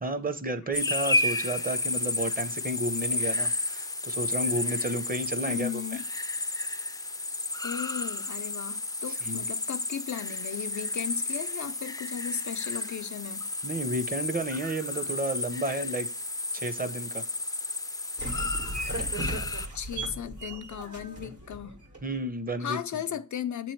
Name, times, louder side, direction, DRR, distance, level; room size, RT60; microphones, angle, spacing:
voice 1, 0.0-5.7 9.3-9.4 13.6-16.1 16.5-17.2 22.0-22.8, right 1 dB, 30° right, 0.6 m, -32 dB
sound 1, 0.7-19.7, left 2 dB, 15° left, 0.3 m, -32 dB
voice 2, 5.5-6.1 7.6-13.5 19.7-21.8 22.6-23.7, left 9 dB, 80° left, 0.5 m, -36 dB
sound 2, 18.2-22.2, right 1 dB, 80° right, 1.7 m, -36 dB
7.6 x 3.0 x 4.4 m
wide cardioid pair, 60°, 29 cm